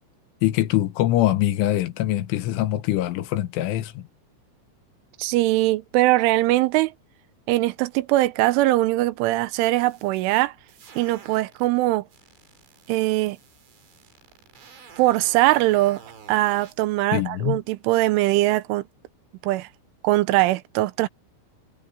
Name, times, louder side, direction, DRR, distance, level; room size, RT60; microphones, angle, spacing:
voice 1, 0.4-4.1 17.1-17.6, left 14 dB, 80° left, 3.6 m, -23 dB
voice 2, 5.2-6.9 7.5-10.5 11.0-12.0 12.9-13.4 15.0-16.0 16.3-18.8 19.4-19.7 20.0-21.1, right 17 dB, 90° right, 3.2 m, -21 dB
sound 1, 9.5-11.7 12.1-16.8, right 6 dB, 70° right, 7.3 m, -49 dB
omnidirectional pair, 5.6 m